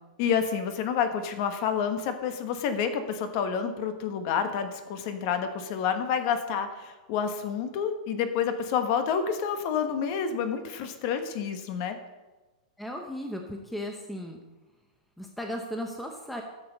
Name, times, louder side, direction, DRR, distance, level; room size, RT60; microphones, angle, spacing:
voice 1, 0.2-12.0, left 7 dB, 40° left, 8 dB, 1.2 m, -29 dB
voice 2, 12.8-14.4 15.2-16.4, equal, ahead, 2 dB, 0.8 m, -36 dB
13.5 x 6.7 x 5.3 m, 1.2 s
supercardioid pair, 165°, 4 cm